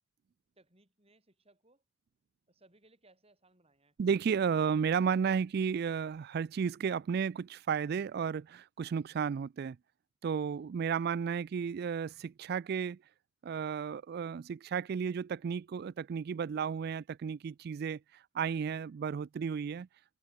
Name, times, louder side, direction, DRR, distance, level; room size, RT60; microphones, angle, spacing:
voice 1, 0.6-1.8 2.5-3.9 10.5-10.7, right 2 dB, 30° right, 6.3 m, -66 dB
voice 2, 4.0-9.8 10.2-13.0 13.4-19.9, right 6 dB, 50° right, 0.3 m, -33 dB
open air
head